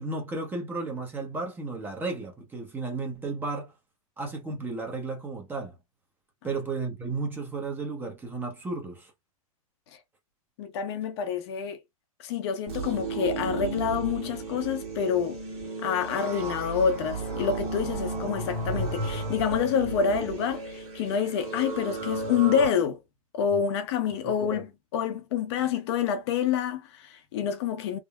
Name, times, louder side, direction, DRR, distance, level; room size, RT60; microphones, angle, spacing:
voice 1, 0.0-3.7 4.2-5.8 6.4-9.1 24.2-24.6, right 3 dB, 10° right, 0.8 m, -33 dB
voice 2, 10.6-11.8 12.2-15.4 15.8-23.0 23.3-28.0, left 7 dB, 45° left, 0.7 m, -27 dB
sound 1, 12.7-22.7, right 3 dB, 30° right, 1.6 m, -34 dB
3.5 x 2.1 x 2.2 m
hypercardioid pair, 135°, 19 cm